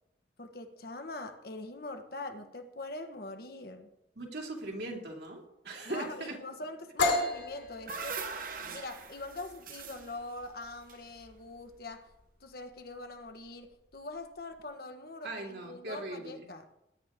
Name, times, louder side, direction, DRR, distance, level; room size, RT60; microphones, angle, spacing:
voice 1, 0.4-3.9 5.8-8.3 8.7-12.1 12.4-16.7, left 2 dB, 55° left, 6 dB, 1.4 m, -43 dB
voice 2, 4.1-6.4 15.2-16.5, right 2 dB, 65° right, 0 dB, 3.0 m, -39 dB
sound 1, 7.0-14.6, left 2 dB, 75° left, 3.2 m, -36 dB
sound 2, 7.4-11.7, right 5 dB, 50° right, 1.2 m, -42 dB
20.5 x 10.5 x 3.7 m, 0.88 s
head